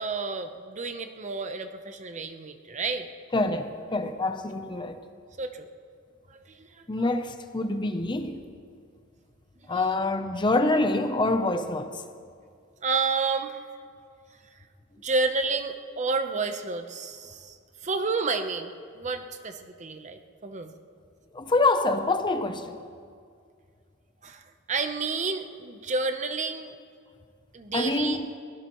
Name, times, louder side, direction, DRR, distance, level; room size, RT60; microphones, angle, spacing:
voice 1, 0.0-3.1 5.4-5.7 6.3-7.1 9.7-9.8 12.8-13.6 15.0-17.6 17.8-20.7 24.2-24.4 24.7-26.8 27.5-28.2, right 4 dB, 35° right, 0.8 m, -30 dB
voice 2, 3.3-5.0 6.9-8.3 9.7-12.0 21.3-22.8 27.7-28.3, left 2 dB, 25° left, 0.7 m, -26 dB
23.0 x 18.0 x 3.1 m
head